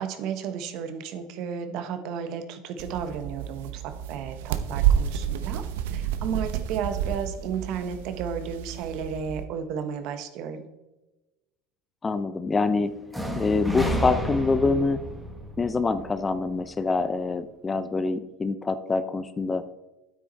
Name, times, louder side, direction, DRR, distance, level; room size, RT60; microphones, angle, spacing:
voice 1, 0.0-3.8 4.1-5.6 5.9-10.7, right 7 dB, 60° right, 8 dB, 1.3 m, -33 dB
sound 1, 2.8-9.5, right 9 dB, 85° right, 0.8 m, -29 dB
voice 2, 12.0-12.9 13.3-15.0 15.6-19.6, left 3 dB, 20° left, 12 dB, 0.6 m, -25 dB
sound 2, 13.1-17.0, equal, ahead, 1.4 m, -32 dB
9.3 x 8.4 x 4.1 m, 1.0 s
supercardioid pair, 120°, 0 cm